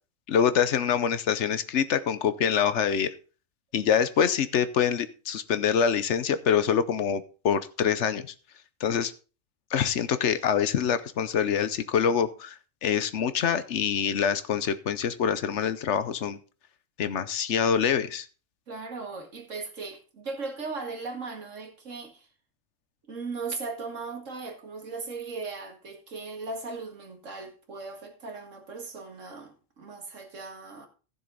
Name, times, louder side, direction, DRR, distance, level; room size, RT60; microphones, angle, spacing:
voice 1, 0.3-3.1 3.7-8.2 8.8-9.1 9.7-16.4 17.0-18.3, left 7 dB, 65° left, 1.0 m, -25 dB
voice 2, 18.7-22.3 23.1-30.9, right 4 dB, 70° right, 2.3 m, -38 dB
15.0 x 6.9 x 3.9 m
omnidirectional pair, 1.3 m